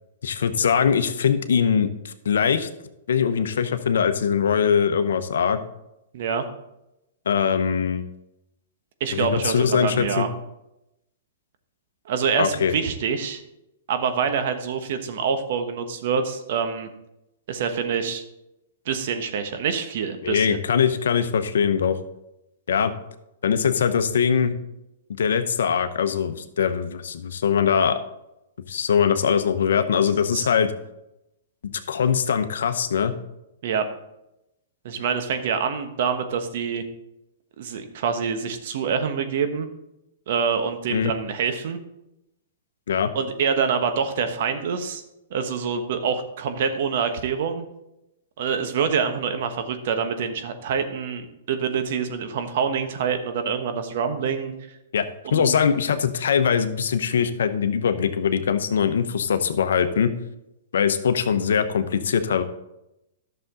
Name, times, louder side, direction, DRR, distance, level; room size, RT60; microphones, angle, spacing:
voice 1, 0.2-2.7 3.1-5.6 7.3-8.1 9.1-10.3 12.4-12.7 20.2-22.0 22.7-22.9 23.4-24.5 25.1-28.0 28.7-30.7 31.6-33.1 40.9-41.1 42.9-43.1 54.9-55.1 55.3-60.1 60.7-62.4, left 7 dB, 80° left, 10 dB, 0.8 m, -22 dB
voice 2, 6.1-6.4 9.0-10.3 12.1-13.4 13.9-16.9 17.5-18.2 18.9-20.6 30.3-30.5 33.6-33.8 34.8-36.8 37.6-39.7 40.3-41.8 43.1-45.0 45.3-47.6 48.4-54.5 55.3-55.5, right 6 dB, 60° right, 8 dB, 1.2 m, -26 dB
11.5 x 6.8 x 3.9 m, 0.88 s
hypercardioid pair, 125°, 0 cm